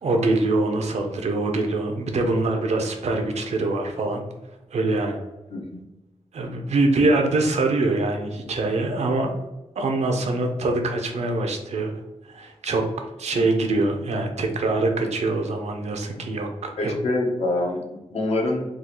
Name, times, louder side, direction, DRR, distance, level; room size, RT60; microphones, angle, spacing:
voice 1, 0.0-4.2 4.7-5.2 6.3-9.3 9.8-11.9 12.3-12.8 13.2-16.9, right 2 dB, 80° right, 4 dB, 0.6 m, -24 dB
voice 2, 5.5-5.8 16.8-18.7, left 2 dB, 65° left, 1 dB, 0.7 m, -25 dB
3.7 x 2.3 x 2.9 m, 1.0 s
wide cardioid pair, 175°, 11 cm